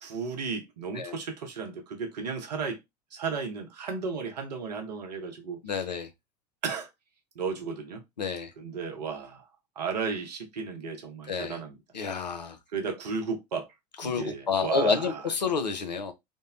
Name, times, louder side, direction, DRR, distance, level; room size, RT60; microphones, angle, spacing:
voice 1, 0.0-2.8 3.1-5.6 6.6-6.9 7.4-8.0 8.6-9.4 9.8-11.8 12.7-13.7 14.0-15.3, right 5 dB, 75° right, 0.7 m, -34 dB
voice 2, 5.6-6.1 8.2-8.5 11.3-11.6 11.9-12.6 14.0-16.1, left 5 dB, 90° left, 0.4 m, -29 dB
2.6 x 2.0 x 2.3 m
figure-of-eight pair, 70°, 21 cm